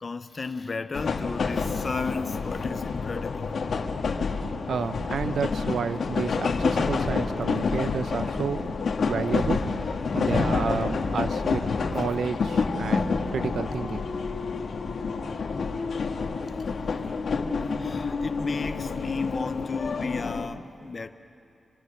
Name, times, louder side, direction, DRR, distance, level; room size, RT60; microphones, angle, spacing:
voice 1, 0.0-3.5 17.8-21.1, left 4 dB, 40° left, 8 dB, 0.7 m, -34 dB
sound 1, 0.9-20.5, left 4 dB, 70° left, 1.5 m, -28 dB
voice 2, 4.7-8.7 9.1-11.6 11.9-14.1 14.5-14.6, right 6 dB, 80° right, 12 dB, 0.7 m, -31 dB
26.5 x 25.5 x 6.6 m, 2.5 s
wide cardioid pair, 135°, 0 cm